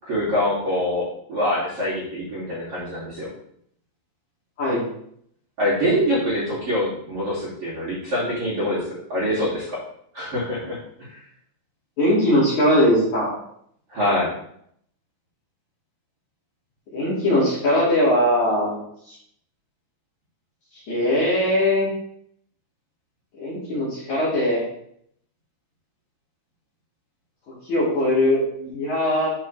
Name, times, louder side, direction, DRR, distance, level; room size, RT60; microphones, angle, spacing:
voice 1, 0.0-3.3 5.6-9.8 10.1-10.8 11.1-11.2 13.9-14.3, equal, 35° right, -10 dB, 2.9 m, -25 dB
voice 2, 12.0-13.3 16.9-19.1 20.9-21.9 23.4-24.6 27.7-29.3, left 1 dB, 45° left, -9 dB, 3.3 m, -20 dB
11.0 x 5.7 x 3.4 m, 0.69 s
omnidirectional pair, 5.7 m